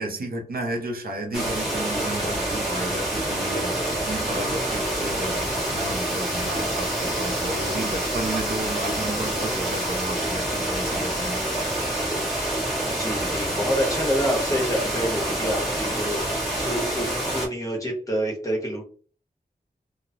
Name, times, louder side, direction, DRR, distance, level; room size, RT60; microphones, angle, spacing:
voice 1, 0.0-11.5, right 1 dB, 75° right, 2 dB, 0.7 m, -32 dB
sound 1, 1.3-17.5, right 1 dB, ahead, 1.3 m, -27 dB
voice 2, 12.8-18.8, equal, 20° left, -1 dB, 1.2 m, -27 dB
3.0 x 2.2 x 2.5 m, 0.40 s
wide cardioid pair, 95°, 15 cm